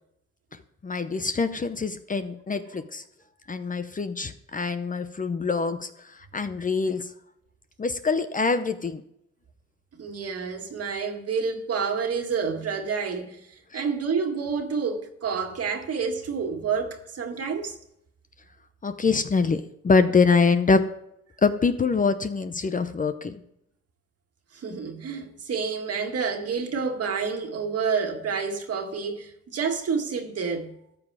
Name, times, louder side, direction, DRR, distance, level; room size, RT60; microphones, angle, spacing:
voice 1, 0.8-3.0 3.5-5.9 6.3-7.1 7.8-9.0 18.8-20.8 21.4-23.4, left 4 dB, 25° left, 0.7 m, -24 dB
voice 2, 10.0-13.5 13.7-17.8 24.5-30.7, right 5 dB, 50° right, 1.9 m, -29 dB
13.5 x 7.5 x 4.8 m
cardioid pair, 90°, 30 cm